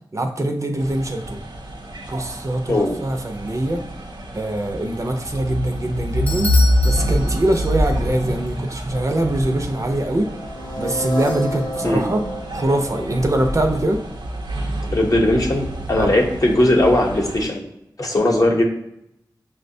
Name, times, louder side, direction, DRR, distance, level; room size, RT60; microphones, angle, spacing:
voice 1, 0.1-1.4 2.1-3.8 4.3-6.5 6.8-10.3 10.8-12.2 12.5-14.0 16.0-16.2, right 1 dB, 40° right, 4 dB, 0.5 m, -23 dB
sound 1, 0.8-17.4, equal, 85° right, 0.7 m, -26 dB
voice 2, 2.7-3.0 11.8-12.0 14.9-17.6 18.0-18.6, left 1 dB, 50° left, 1 dB, 0.8 m, -18 dB
Bell / Doorbell, 6.3-8.1, left 1 dB, 20° left, 0.7 m, -31 dB
sound 2, 10.1-14.1, equal, 85° left, 0.7 m, -31 dB
5.6 x 2.1 x 2.6 m, 0.80 s
wide cardioid pair, 55°, 8 cm